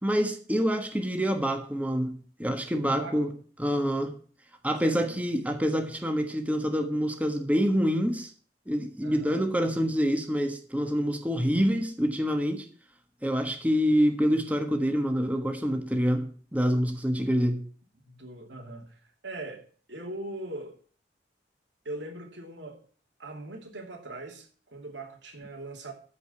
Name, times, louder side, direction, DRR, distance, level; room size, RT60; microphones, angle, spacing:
voice 1, 0.0-3.3 3.6-4.1 4.6-8.3 8.7-12.6 13.2-17.6, equal, 10° right, 1.3 m, -26 dB
voice 2, 2.8-3.3 4.8-5.2 9.0-9.4 18.0-20.8 21.8-22.8 23.2-25.9, right 2 dB, 90° right, 2.8 m, -41 dB
14.0 x 5.1 x 8.6 m
head